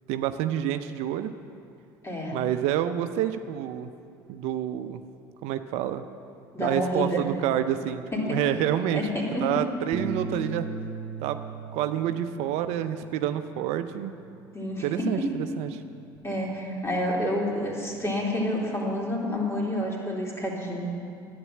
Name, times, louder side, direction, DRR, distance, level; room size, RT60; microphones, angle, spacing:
voice 1, 0.1-1.3 2.3-3.9 4.3-5.0 5.4-6.0 6.6-9.0 9.4-10.7 11.2-11.4 11.7-14.1 14.8-15.8, right 11 dB, 65° right, 10 dB, 0.6 m, -28 dB
voice 2, 2.0-2.4 6.5-7.2 8.1-8.4 8.9-9.5 14.5-15.3 16.2-20.9, left 1 dB, 20° left, -3 dB, 3.5 m, -29 dB
Bass guitar, 9.9-14.4 14.8-16.2, right 4 dB, 25° right, 1.3 m, -39 dB
11.0 x 9.5 x 7.5 m, 2.4 s
hypercardioid pair, 70°, 12 cm